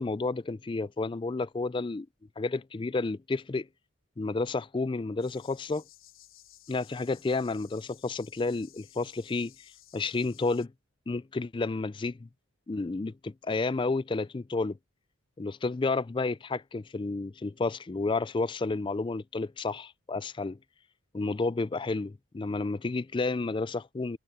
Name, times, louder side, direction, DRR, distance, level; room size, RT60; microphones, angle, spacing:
voice 1, 0.0-2.1 2.4-3.7 4.2-5.8 6.7-9.5 9.9-10.7 11.1-12.3 12.7-14.8 15.4-20.6 21.1-24.2, left 3 dB, 20° left, 0.3 m, -31 dB
sound 1, 5.2-10.7, left 13 dB, 65° left, 3.6 m, -56 dB
head